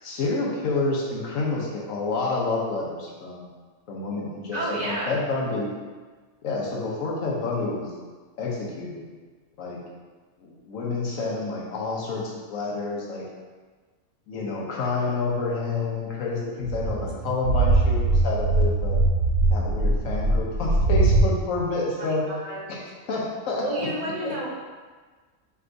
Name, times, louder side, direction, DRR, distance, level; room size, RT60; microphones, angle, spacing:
voice 1, 0.0-3.5 3.9-5.7 6.4-7.9 8.4-9.0 9.6-9.8 10.4-13.2 14.3-19.0 19.5-22.2 22.7-23.9 24.2-24.3, left 3 dB, 75° left, -3 dB, 1.2 m, -29 dB
voice 2, 4.5-5.1 22.0-22.6 23.6-24.5, right 1 dB, 40° right, -5 dB, 0.8 m, -31 dB
sound 1, 16.6-21.3, right 2 dB, 75° right, 1.0 m, -21 dB
4.4 x 3.5 x 2.6 m, 1.4 s
omnidirectional pair, 1.4 m